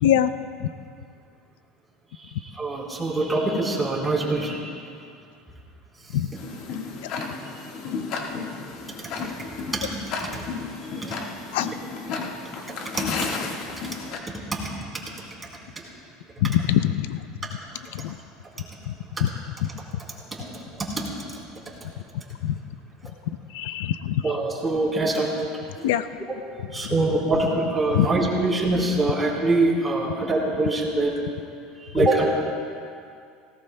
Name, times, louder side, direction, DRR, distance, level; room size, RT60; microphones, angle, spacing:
voice 1, 2.4-4.7 9.2-9.3 9.7-9.9 10.2-10.5 11.0-11.2 12.9-13.0 14.5-14.7 20.3-20.4 20.7-20.9 21.3-21.4 24.2-25.3 25.8-25.9 26.7-31.1 31.9-32.3, right 2 dB, 15° right, -4 dB, 3.9 m, -24 dB
Tick-tock, 6.4-14.2, left 4 dB, 60° left, 1.5 m, -33 dB
voice 2, 16.4-17.3 17.9-18.1 18.9-19.0 19.2-19.3 19.6-19.7 22.4-22.6 23.0-23.1 23.5-24.3 25.8-26.1 26.8-27.0 27.9-28.1 31.9-32.1, left 11 dB, 80° left, 12 dB, 0.4 m, -23 dB
19.5 x 18.0 x 2.2 m, 2.4 s
supercardioid pair, 105°, 0 cm